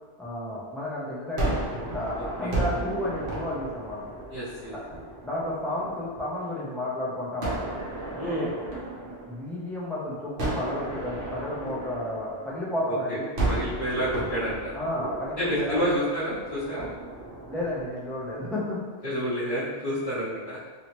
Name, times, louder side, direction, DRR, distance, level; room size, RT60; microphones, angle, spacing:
voice 1, 0.2-4.0 4.7-7.6 8.1-8.5 9.0-13.3 14.7-15.8 17.5-18.8, left 1 dB, ahead, -7 dB, 0.4 m, -32 dB
Gunshot gunfire, 1.4-6.5 7.4-9.8 10.4-12.9 13.4-18.6, right 2 dB, 50° right, 1.0 m, -34 dB
voice 2, 4.3-4.7 8.1-8.5 12.9-13.0 13.5-14.7 15.4-16.9 19.0-20.6, equal, 50° left, -12 dB, 1.0 m, -29 dB
3.0 x 2.8 x 2.9 m, 1.4 s
omnidirectional pair, 1.2 m